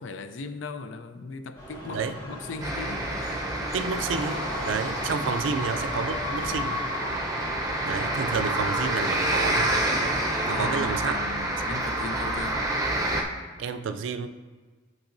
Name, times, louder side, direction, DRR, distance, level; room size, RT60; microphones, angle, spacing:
voice 1, 0.0-3.5 10.5-12.6, left 4 dB, 70° left, 9 dB, 0.5 m, -38 dB
sound 1, 1.6-10.3, left 1 dB, 20° left, 1.8 m, -37 dB
sound 2, 2.6-13.2, right 1 dB, 20° right, 0.7 m, -28 dB
voice 2, 3.7-6.8 7.8-9.8 10.5-11.1 13.6-14.3, right 5 dB, 70° right, 9 dB, 0.4 m, -30 dB
sound 3, 4.0-10.5, equal, 5° left, 1.9 m, -43 dB
8.8 x 6.0 x 2.6 m, 1.4 s
head